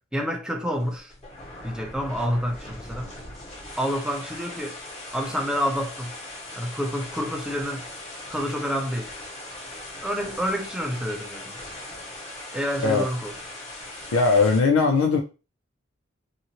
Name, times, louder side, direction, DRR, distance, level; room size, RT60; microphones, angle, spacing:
voice 1, 0.1-1.1 1.6-3.1 3.8-4.8 5.1-6.1 6.6-7.8 8.3-9.1 10.0-11.6 12.5-13.3, equal, 5° right, 0.4 m, -28 dB
sound 1, 0.7-14.6, left 1 dB, 35° left, 1.3 m, -39 dB
voice 2, 14.1-15.2, left 4 dB, 80° left, 0.4 m, -19 dB
2.7 x 2.5 x 2.8 m
head